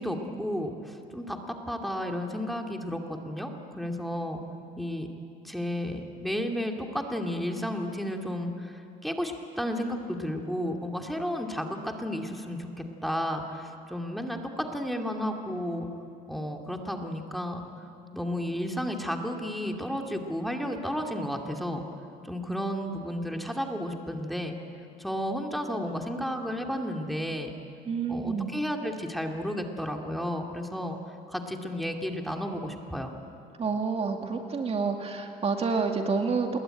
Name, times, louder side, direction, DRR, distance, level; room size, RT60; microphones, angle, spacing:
voice 1, 0.0-4.4 4.8-5.1 5.4-8.7 9.0-12.7 13.0-15.9 16.3-17.6 18.1-21.8 22.2-24.6 25.0-27.5 28.1-31.0 31.3-33.1, equal, ahead, 2 dB, 2.5 m, -32 dB
voice 2, 27.9-28.6 33.6-36.5, right 5 dB, 35° right, 4 dB, 2.2 m, -28 dB
28.0 x 21.5 x 9.1 m, 2.7 s
cardioid pair, 110°, 17 cm